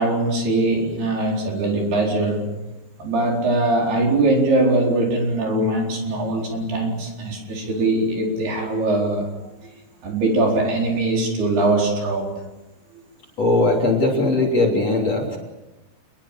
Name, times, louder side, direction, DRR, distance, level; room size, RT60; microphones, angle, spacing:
voice 1, 0.0-2.4 3.0-9.5 10.0-12.3, right 2 dB, 55° right, 0 dB, 6.1 m, -21 dB
voice 2, 13.4-15.4, left 2 dB, 35° left, 2 dB, 3.9 m, -19 dB
29.5 x 21.0 x 7.5 m, 1.0 s
omnidirectional pair, 5.7 m